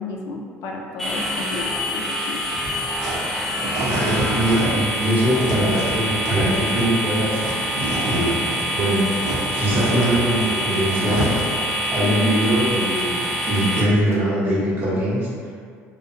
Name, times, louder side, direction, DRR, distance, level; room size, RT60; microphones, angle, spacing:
voice 1, 0.0-2.4 12.0-12.4, left 4 dB, 70° left, 0 dB, 0.4 m, -32 dB
sound 1, 1.0-13.8, equal, 5° left, 0.4 m, -26 dB
sound 2, 2.4-8.7 9.0-11.7, right 1 dB, 75° right, 0.6 m, -29 dB
voice 2, 3.3-9.1 9.5-11.3 11.9-15.5, equal, 40° right, -8 dB, 0.9 m, -22 dB
sound 3, 4.7-4.8 5.3-5.5 6.0-6.1 6.6-6.7 7.3-7.4 7.9-8.0 10.1-10.2 10.7-10.8 11.3-11.4 11.8-11.9 12.4-12.5 12.9-13.0 13.5-13.6 14.1-14.2, left 2 dB, 50° left, 0.8 m, -44 dB
2.5 x 2.1 x 2.5 m, 2.1 s
cardioid pair, 115°, 6 cm